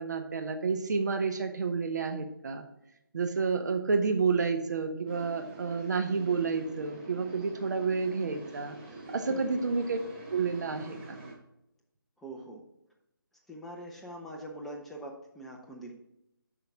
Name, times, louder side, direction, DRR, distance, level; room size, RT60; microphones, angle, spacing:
voice 1, 0.0-2.6 3.1-8.8 9.1-10.0 10.3-11.0, right 4 dB, 50° right, 6 dB, 1.0 m, -30 dB
sound 1, 5.1-11.3, right 2 dB, 30° right, 2.2 m, -46 dB
voice 2, 9.3-9.8 12.2-12.6 13.5-15.9, right 1 dB, ahead, -2 dB, 0.6 m, -43 dB
8.2 x 5.7 x 3.5 m, 0.83 s
figure-of-eight pair, 155°, 12 cm